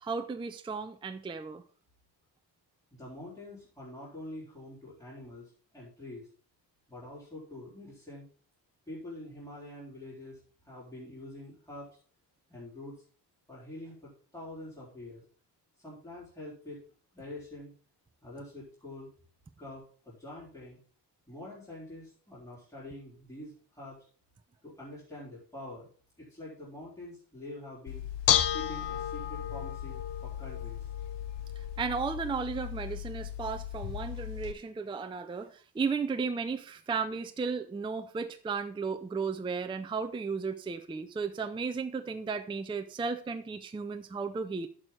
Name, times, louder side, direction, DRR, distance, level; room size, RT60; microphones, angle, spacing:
voice 1, 0.0-1.6 31.8-44.7, right 5 dB, 10° right, 0.5 m, -34 dB
voice 2, 2.9-6.3 6.9-8.3 8.9-10.4 10.7-11.9 12.5-13.0 13.5-15.2 15.8-16.8 17.1-17.7 18.2-19.1 19.6-20.8 21.3-24.1 24.6-25.9 26.2-28.0 28.5-30.9, left 1 dB, 10° left, 4.2 m, -45 dB
Bell / Dishes pots and pans, 27.9-34.5, left 11 dB, 80° left, 0.9 m, -33 dB
11.0 x 6.4 x 3.8 m
cardioid pair, 145°, 42 cm